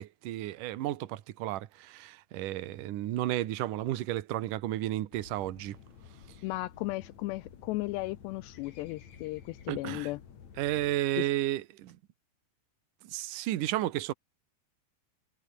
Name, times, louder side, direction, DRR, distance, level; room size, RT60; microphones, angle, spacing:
voice 1, 0.0-5.8 9.7-10.1 10.6-12.0 13.0-14.1, right 14 dB, 65° right, 2.1 m, -33 dB
sound 1, 5.1-11.0, left 7 dB, 45° left, 3.4 m, -52 dB
voice 2, 6.4-10.2 11.2-11.3, left 20 dB, 80° left, 2.6 m, -35 dB
omnidirectional pair, 5.2 m